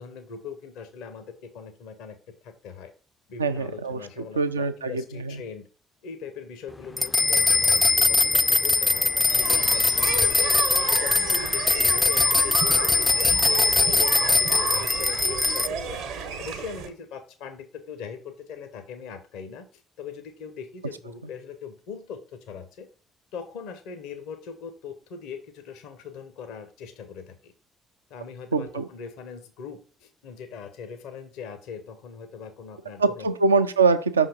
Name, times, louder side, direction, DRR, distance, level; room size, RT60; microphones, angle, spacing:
voice 1, 0.0-2.2 2.4-2.9 3.3-5.7 6.0-10.4 10.9-22.9 23.3-27.5 28.1-33.3, left 6 dB, 70° left, 9 dB, 0.7 m, -40 dB
voice 2, 3.4-4.0 4.4-5.3 28.5-28.8 33.0-34.3, right 4 dB, 90° right, 10 dB, 0.4 m, -23 dB
sound 1, 7.0-15.7, left 3 dB, 15° left, 0.3 m, -21 dB
sound 2, 9.3-16.9, right 6 dB, 70° right, 0.9 m, -32 dB
5.7 x 3.6 x 5.1 m, 0.36 s
figure-of-eight pair, 50°, 0 cm